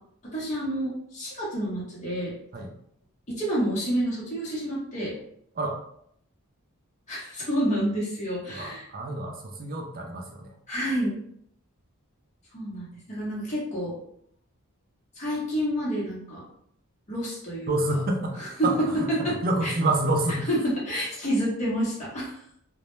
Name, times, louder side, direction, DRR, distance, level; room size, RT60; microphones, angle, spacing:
voice 1, 0.3-2.3 3.3-5.1 7.1-8.8 10.7-11.1 12.5-14.0 15.2-16.4 17.1-17.7 18.4-18.7 19.2-19.3 19.6-19.7 20.5-22.4, equal, 30° left, -7 dB, 0.7 m, -29 dB
voice 2, 8.5-10.5 17.7-20.5, right 2 dB, 40° right, 2 dB, 0.4 m, -28 dB
2.1 x 2.0 x 2.9 m, 0.70 s
head